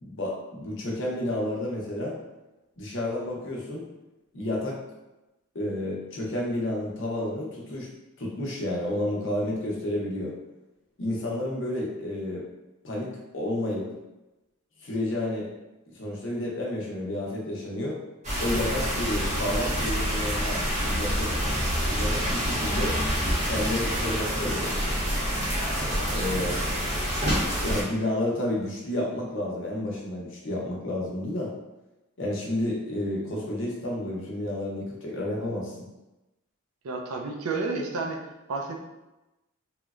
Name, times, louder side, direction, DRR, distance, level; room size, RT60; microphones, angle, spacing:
voice 1, 0.0-2.2 2.8-3.8 4.3-4.8 5.5-7.9 8.2-10.3 11.0-12.5 12.8-13.9 14.8-15.5 15.9-18.0 18.4-20.6 20.9-21.3 21.8-22.9 23.4-25.0 25.8-26.5 27.2-27.3 27.6-31.5 32.2-35.9, left 1 dB, 55° left, -3 dB, 0.6 m, -30 dB
sound 1, 18.2-27.8, equal, 30° right, 0.6 m, -27 dB
voice 2, 36.8-38.2 38.5-38.9, right 3 dB, 75° right, 2 dB, 0.4 m, -31 dB
3.0 x 2.1 x 2.3 m, 1.0 s
head